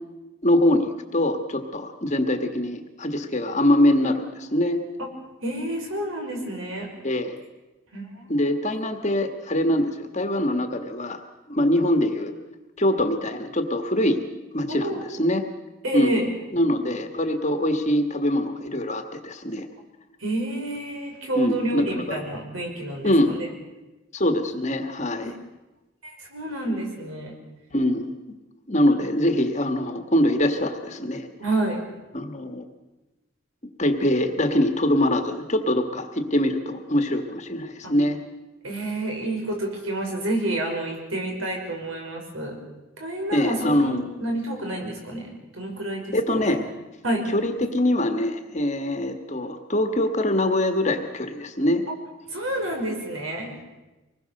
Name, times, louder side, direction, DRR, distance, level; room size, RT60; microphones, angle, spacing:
voice 1, 0.4-4.8 7.0-7.4 8.3-11.2 11.5-12.3 12.8-14.2 14.5-15.4 15.9-16.3 16.5-19.7 21.4-22.2 23.0-23.3 24.1-25.3 27.7-28.3 28.7-31.3 32.1-32.6 33.8-38.2 43.3-44.0 46.1-46.6 47.3-51.8, left 1 dB, 35° left, 6 dB, 1.6 m, -23 dB
voice 2, 5.4-6.9 7.9-8.3 14.7-15.1 15.8-16.3 20.2-23.5 25.2-25.3 26.0-27.3 31.4-31.8 37.8-37.9 38.6-42.6 43.0-46.6 47.0-47.3 52.3-53.6, right 1 dB, 70° right, 2 dB, 5.7 m, -29 dB
25.0 x 20.0 x 6.6 m, 1.1 s
head